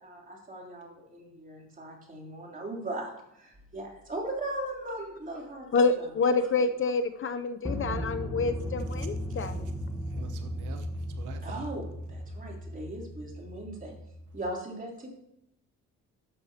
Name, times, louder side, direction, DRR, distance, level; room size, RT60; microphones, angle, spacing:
voice 1, 0.0-6.5 11.4-13.9 14.3-15.1, right 1 dB, 25° right, -1 dB, 3.2 m, -39 dB
sound 1, 3.6-3.8 7.7-14.4, equal, 10° right, 1.2 m, -36 dB
voice 2, 5.7-9.7, left 4 dB, 45° left, 10 dB, 0.6 m, -27 dB
voice 3, 10.1-11.7, right 7 dB, 90° right, 7 dB, 1.0 m, -46 dB
12.5 x 7.0 x 2.9 m, 0.81 s
cardioid pair, 90°, 30 cm